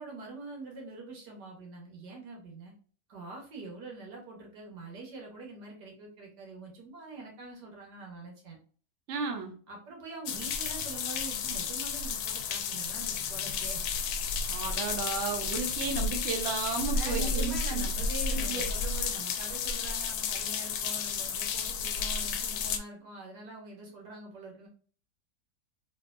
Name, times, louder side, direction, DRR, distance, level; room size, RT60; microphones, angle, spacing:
voice 1, 0.0-2.7 3.1-8.6 9.7-13.9 16.9-24.7, right 3 dB, 80° right, 0 dB, 1.8 m, -44 dB
voice 2, 9.1-9.6 14.4-17.8 18.3-18.6, right 4 dB, 60° right, 4 dB, 0.8 m, -33 dB
sound 1, 10.3-22.8, left 5 dB, 75° left, 1.0 m, -32 dB
3.3 x 3.0 x 2.5 m, 0.43 s
omnidirectional pair, 1.8 m